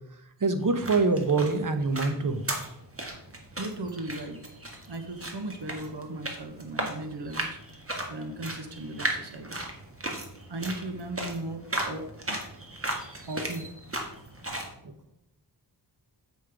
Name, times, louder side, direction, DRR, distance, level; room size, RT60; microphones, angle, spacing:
voice 1, 0.4-2.4 14.8-14.9, right 3 dB, 50° right, 8 dB, 1.0 m, -25 dB
sound 1, 0.6-14.7, right 1 dB, 35° right, 1.6 m, -36 dB
voice 2, 3.6-4.4 4.8-7.6 8.1-9.7 10.5-12.4 13.3-13.6, right 1 dB, 75° right, 6 dB, 1.3 m, -37 dB
7.9 x 5.3 x 5.0 m, 0.75 s
wide cardioid pair, 85°, 42 cm